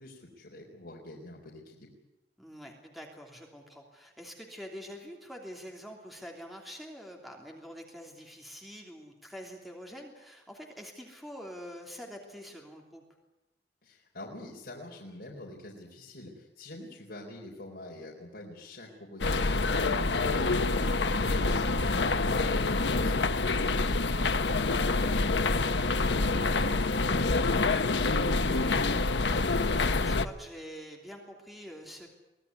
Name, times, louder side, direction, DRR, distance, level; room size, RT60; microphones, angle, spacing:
voice 1, 0.0-1.9 13.8-20.7 21.2-21.5 21.8-28.0, left 1 dB, 65° left, -2 dB, 4.1 m, -45 dB
voice 2, 2.4-13.0 20.7-21.2 28.4-28.9 29.2-32.1, equal, ahead, 0 dB, 3.0 m, -46 dB
sound 1, 19.2-30.3, left 3 dB, 90° left, 1.0 m, -27 dB
24.0 x 18.0 x 9.6 m, 1.0 s
head